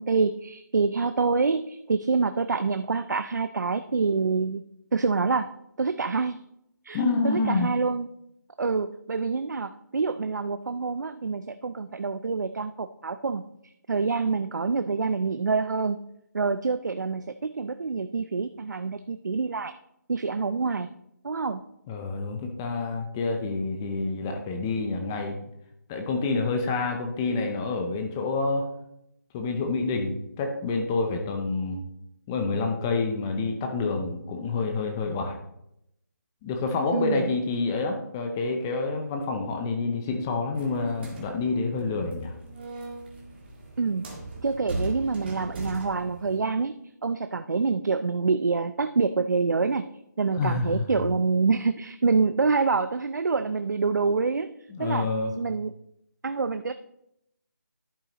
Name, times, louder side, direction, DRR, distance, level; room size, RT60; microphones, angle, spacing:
voice 1, 0.0-4.6 4.9-5.5 5.8-6.4 6.8-8.1 8.6-16.0 16.3-19.7 20.1-20.9 21.2-21.6 36.9-37.3 43.8-44.1 44.4-46.7 47.0-49.8 50.2-54.5 54.8-55.1 55.4-55.7 56.2-56.7, right 4 dB, 70° right, 10 dB, 0.5 m, -26 dB
voice 2, 6.9-7.7 21.9-25.4 25.9-28.7 29.3-31.8 32.3-35.4 36.4-42.3 50.3-51.0 54.7-55.3, left 3 dB, 10° left, 4 dB, 0.5 m, -28 dB
sound 1, 40.5-46.4, right 1 dB, 30° right, 1.9 m, -38 dB
11.0 x 8.8 x 2.9 m, 0.79 s
figure-of-eight pair, 165°, 10 cm